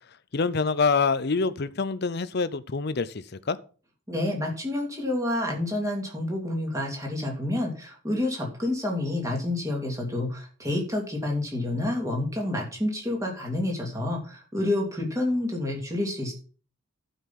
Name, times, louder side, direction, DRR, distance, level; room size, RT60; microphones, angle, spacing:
voice 1, 0.3-3.6, left 4 dB, 45° left, 0.6 m, -26 dB
voice 2, 4.1-16.3, left 1 dB, 15° right, 2.8 m, -29 dB
11.5 x 5.5 x 5.8 m
head